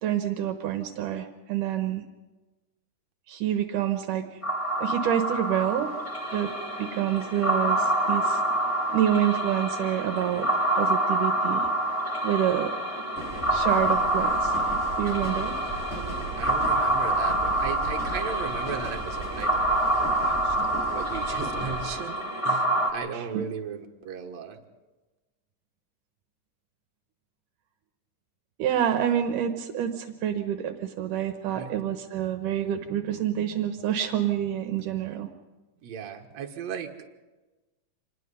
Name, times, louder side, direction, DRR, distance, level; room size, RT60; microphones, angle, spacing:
voice 1, 0.0-2.0 3.3-4.4 4.8-5.9 6.3-6.5 6.8-8.4 8.9-10.5 10.8-11.7 12.2-12.7 13.5-14.6 15.0-15.6 23.1-23.4 28.6-35.3, right 10 dB, 75° right, 7 dB, 2.5 m, -27 dB
sound 1, 4.4-22.9, right 1 dB, 15° left, 1.2 m, -27 dB
sound 2, 13.2-21.9, right 2 dB, 15° right, 7.6 m, -37 dB
voice 2, 16.4-20.6 20.9-24.6 31.6-31.7 35.8-37.1, right 6 dB, 60° right, 3 dB, 2.5 m, -37 dB
26.5 x 20.0 x 5.4 m, 1.2 s
omnidirectional pair, 3.8 m